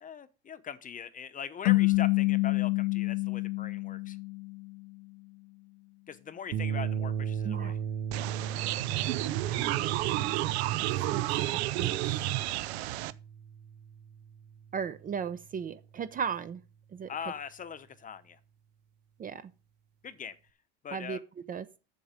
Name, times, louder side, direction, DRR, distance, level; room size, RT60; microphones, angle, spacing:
voice 1, 0.0-4.2 6.1-7.8 17.1-18.4 20.0-20.4 20.8-21.2, left 7 dB, 25° left, 0.8 m, -41 dB
sound 1, 1.6-4.8, left 24 dB, 75° left, 0.7 m, -27 dB
sound 2, 6.5-15.0, right 7 dB, 70° right, 1.1 m, -37 dB
voice 2, 7.4-7.8 9.5-10.5 11.1-12.3 14.7-16.6 16.9-17.1 19.2-19.5 20.9-21.2 21.5-21.7, right 7 dB, 25° right, 0.6 m, -37 dB
sound 3, 8.1-13.1, right 15 dB, 85° right, 0.6 m, -31 dB
7.4 x 7.3 x 5.1 m
supercardioid pair, 115°, 32 cm